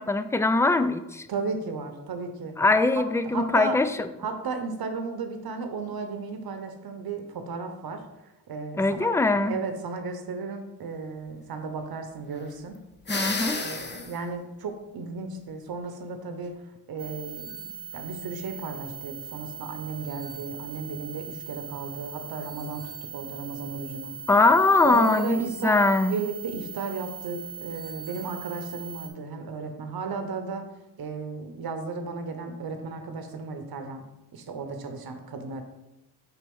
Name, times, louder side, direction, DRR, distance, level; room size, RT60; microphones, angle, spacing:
voice 1, 0.0-1.3 2.6-4.1 8.8-9.6 13.1-13.6 24.3-26.2, left 3 dB, 5° left, 11 dB, 0.3 m, -22 dB
voice 2, 1.3-2.5 3.2-3.8 4.2-9.1 9.5-12.8 13.5-16.6 16.9-22.8 23.1-24.2 24.8-25.8 26.1-30.7 31.0-34.0 34.3-35.6, right 4 dB, 60° right, 6 dB, 0.9 m, -34 dB
sound 1, 13.1-14.2, left 3 dB, 25° left, 0.8 m, -30 dB
sound 2, 17.0-29.1, right 6 dB, 20° right, 1.2 m, -40 dB
4.3 x 4.2 x 5.3 m, 0.95 s
cardioid pair, 60°, 41 cm